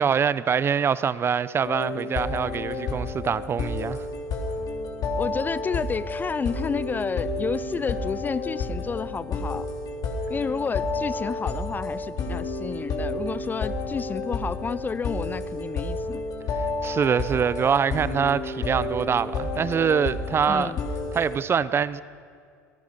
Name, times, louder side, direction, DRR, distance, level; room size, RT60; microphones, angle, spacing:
voice 1, 0.0-4.0 16.8-20.7 21.1-22.0, right 7 dB, 25° right, 0.6 m, -24 dB
sound 1, 1.6-21.4, left 3 dB, 45° left, 3.5 m, -31 dB
voice 2, 5.2-9.7 10.3-16.2 20.5-20.8, left 5 dB, 20° left, 0.5 m, -30 dB
27.0 x 18.5 x 5.5 m
hypercardioid pair, 80°, 9 cm